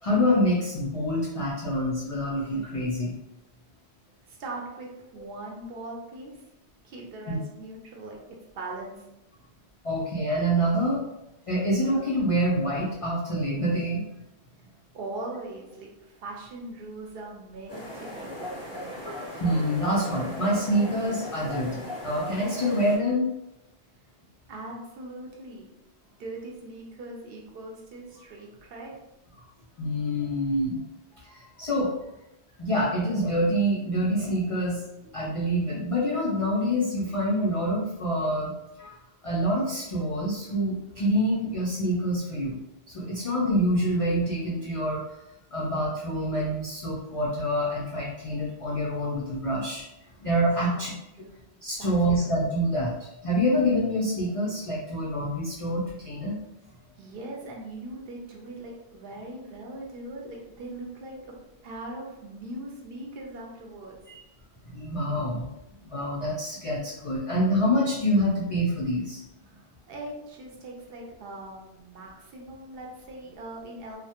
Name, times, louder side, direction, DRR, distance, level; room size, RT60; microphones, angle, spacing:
voice 1, 0.0-3.2 7.3-7.4 9.8-11.1 11.5-14.0 19.4-23.3 29.8-30.8 31.2-32.0 32.6-34.8 35.1-39.0 39.2-42.6 42.9-45.0 45.5-49.9 50.2-50.9 51.6-56.3 64.1-64.2 64.7-65.5 65.8-69.2, equal, 65° left, -5 dB, 0.3 m, -26 dB
voice 2, 4.3-6.4 6.8-9.1 14.9-18.9 24.5-25.7 26.2-29.0 50.6-50.9 51.2-51.4 51.8-52.3 57.0-61.3 61.6-64.0 69.4-74.0, right 2 dB, 65° right, -1 dB, 0.7 m, -40 dB
sound 1, 17.7-23.0, left 1 dB, 5° right, 0.7 m, -38 dB
2.1 x 2.1 x 2.8 m, 0.90 s
omnidirectional pair, 1.1 m